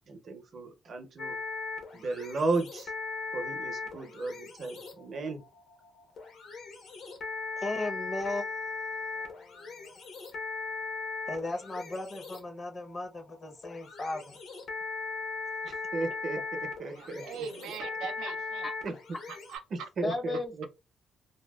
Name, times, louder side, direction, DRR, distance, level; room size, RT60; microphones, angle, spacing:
voice 1, 0.0-1.4 1.9-2.9 3.3-5.4 15.6-16.4 16.8-17.2 18.8-18.9 19.7-20.7, right 3 dB, 55° right, 0.6 m, -34 dB
sound 1, 1.2-19.6, left 4 dB, 70° left, 0.9 m, -39 dB
voice 2, 7.6-8.8 9.1-9.9 11.3-14.4 18.6-18.7 20.0-20.7, left 2 dB, 35° left, 0.6 m, -36 dB
voice 3, 17.0-18.7 19.3-19.9, right 6 dB, 90° right, 0.3 m, -41 dB
2.7 x 2.2 x 2.2 m
cardioid pair, 90°, 0 cm